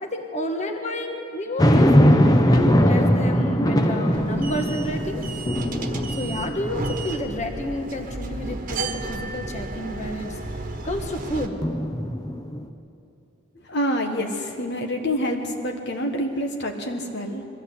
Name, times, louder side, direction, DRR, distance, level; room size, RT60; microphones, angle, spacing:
voice 1, 0.0-5.2 6.1-10.4 10.8-11.6, left 1 dB, 35° left, 4 dB, 1.5 m, -30 dB
sound 1, 1.6-7.1 7.6-7.7 11.6-12.7, equal, 20° left, 0.9 m, -20 dB
sound 2, 4.1-11.5, right 2 dB, 40° right, 1.4 m, -33 dB
voice 2, 13.6-17.4, equal, 55° left, 3 dB, 1.4 m, -27 dB
22.0 x 14.5 x 8.2 m, 2.7 s
head